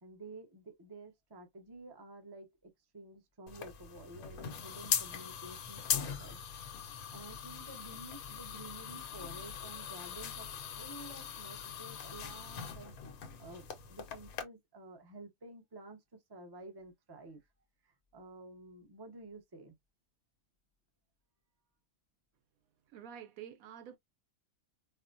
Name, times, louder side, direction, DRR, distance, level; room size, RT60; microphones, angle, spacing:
voice 1, 0.0-6.4 7.1-12.9 13.4-17.5 17.8-19.7, right 2 dB, 25° right, 0.6 m, -51 dB
sound 1, 3.5-14.4, left 8 dB, 85° left, 1.2 m, -40 dB
voice 2, 22.9-24.0, right 9 dB, 75° right, 1.0 m, -48 dB
4.3 x 2.1 x 2.5 m
omnidirectional pair, 1.5 m